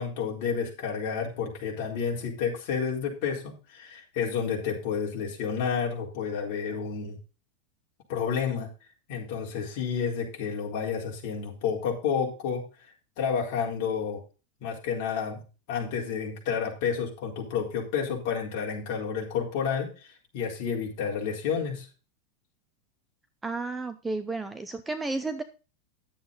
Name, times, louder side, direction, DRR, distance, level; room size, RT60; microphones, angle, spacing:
voice 1, 0.0-7.2 8.1-8.7 9.1-12.7 13.2-14.2 14.6-15.4 15.7-21.9, left 6 dB, 40° left, -1 dB, 4.1 m, -30 dB
voice 2, 23.4-25.4, right 3 dB, 5° right, 9 dB, 0.5 m, -32 dB
11.0 x 7.9 x 3.9 m, 0.33 s
supercardioid pair, 180°, 0 cm